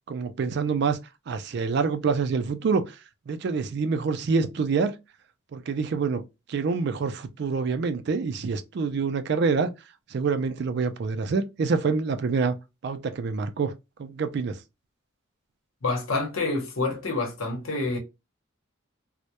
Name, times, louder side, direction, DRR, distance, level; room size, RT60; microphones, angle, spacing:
voice 1, 0.1-1.0 1.3-3.0 3.3-5.0 5.5-6.2 6.5-9.7 10.1-12.6 12.8-13.7 14.0-14.6, right 4 dB, 50° right, 0.3 m, -26 dB
voice 2, 15.8-18.0, left 3 dB, 70° left, 0.8 m, -27 dB
2.2 x 2.0 x 2.8 m
head